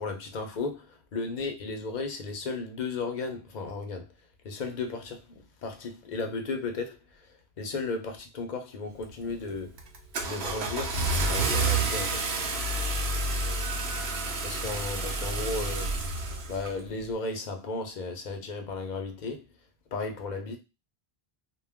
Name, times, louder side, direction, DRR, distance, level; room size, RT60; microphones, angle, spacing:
voice 1, 0.0-4.1 4.4-7.3 7.6-9.8 10.3-11.0 11.3-12.3 14.4-16.0 16.5-19.5 19.9-20.6, left 3 dB, 55° left, 0.7 m, -34 dB
Car / Engine starting, 9.0-9.3 9.8-16.7, right 2 dB, 85° right, 0.9 m, -29 dB
2.2 x 2.2 x 3.4 m
omnidirectional pair, 1.0 m